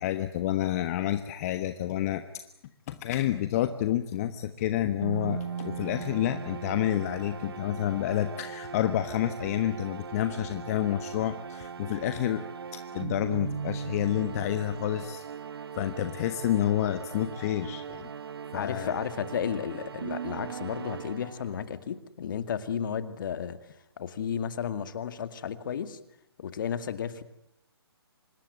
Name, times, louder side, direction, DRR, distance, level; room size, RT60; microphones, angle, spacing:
voice 1, 0.0-2.4 2.9-12.4 12.9-15.2 15.8-18.1 18.5-19.0, left 12 dB, 35° left, 9 dB, 1.3 m, -29 dB
sound 1, 5.0-21.8, right 6 dB, 65° right, 1.0 m, -39 dB
voice 2, 18.5-23.6 24.0-26.0 26.4-27.2, left 8 dB, 50° left, 11 dB, 2.2 m, -33 dB
25.5 x 20.0 x 9.4 m, 0.80 s
hypercardioid pair, 140°, 14 cm